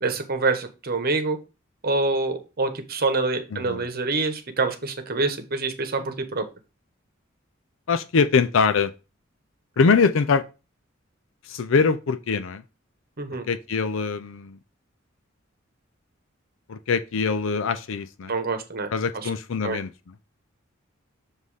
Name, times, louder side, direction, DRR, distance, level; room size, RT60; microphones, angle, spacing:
voice 1, 0.0-1.4 1.8-6.4 13.2-13.4 18.3-18.9 19.2-19.3 19.6-19.8, right 3 dB, 50° right, 1.0 m, -26 dB
voice 2, 3.5-3.9 7.9-8.9 9.8-10.4 11.4-12.6 13.5-14.6 16.7-18.3 18.9-19.9, left 5 dB, 70° left, 0.5 m, -23 dB
7.4 x 2.7 x 4.8 m
head